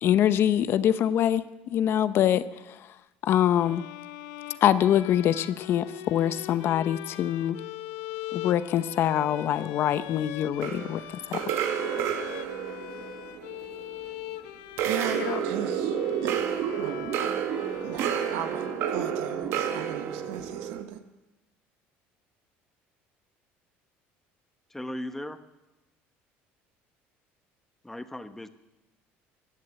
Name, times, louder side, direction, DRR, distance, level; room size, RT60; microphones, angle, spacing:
voice 1, 0.0-2.8 3.2-3.8 4.6-7.6 8.3-11.0 11.3-11.5 15.2-15.4, left 10 dB, 55° left, 0.8 m, -24 dB
sound 1, 3.6-19.2, left 15 dB, 85° left, 0.8 m, -42 dB
sound 2, 10.6-14.2 14.8-20.8, right 8 dB, 65° right, 1.7 m, -30 dB
voice 2, 14.8-16.4 16.8-17.3 17.8-21.0, right 11 dB, 90° right, 1.4 m, -38 dB
voice 3, 24.7-25.4 27.8-28.5, left 1 dB, 5° left, 1.0 m, -37 dB
15.5 x 10.5 x 8.1 m
cardioid pair, 115°, 5 cm